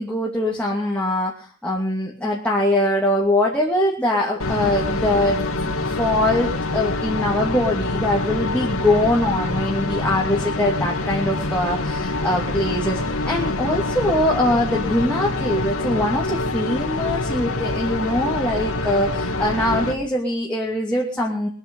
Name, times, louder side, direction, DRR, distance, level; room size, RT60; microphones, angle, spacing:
voice 1, 0.0-5.4 5.9-21.5, left 1 dB, 5° left, -5 dB, 2.7 m, -22 dB
sound 1, 4.4-19.9, left 2 dB, 80° left, 2.4 m, -25 dB
23.5 x 9.1 x 5.6 m, 0.40 s
head